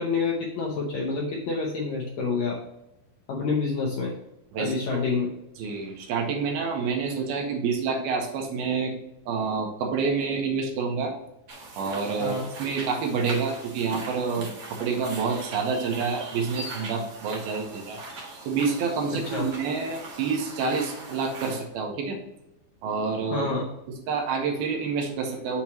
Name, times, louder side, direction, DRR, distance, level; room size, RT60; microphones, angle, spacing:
voice 1, 0.0-2.6 3.3-4.1 4.6-5.3 12.2-12.5 19.1-19.5 23.3-23.7, left 4 dB, 85° left, -2 dB, 1.6 m, -28 dB
voice 2, 4.5-5.1 5.6-8.9 9.3-11.1 11.8-18.0 18.5-22.2 22.8-23.5 24.1-25.6, right 5 dB, 80° right, 2 dB, 2.8 m, -28 dB
sound 1, 11.5-21.6, right 2 dB, 55° right, 1.8 m, -40 dB
7.1 x 3.0 x 6.0 m, 0.89 s
omnidirectional pair, 4.5 m